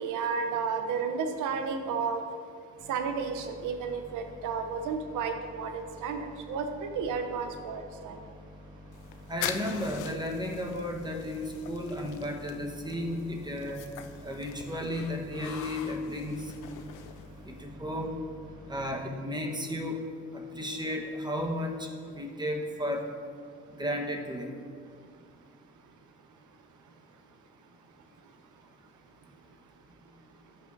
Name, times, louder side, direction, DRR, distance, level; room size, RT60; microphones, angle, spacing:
voice 1, 0.0-2.2 2.9-8.2, right 5 dB, 85° right, 6 dB, 0.8 m, -32 dB
sound 1, 2.8-18.8, left 1 dB, 25° left, 1.8 m, -50 dB
sound 2, 8.9-17.6, left 9 dB, 80° left, 0.5 m, -43 dB
voice 2, 9.3-13.8 14.2-16.4 17.6-18.1 18.7-20.0 20.3-21.9 22.2-23.1 23.8-24.5, left 1 dB, 15° right, 1 dB, 1.1 m, -33 dB
13.0 x 5.6 x 2.6 m, 2.1 s
cardioid pair, 90°, 30 cm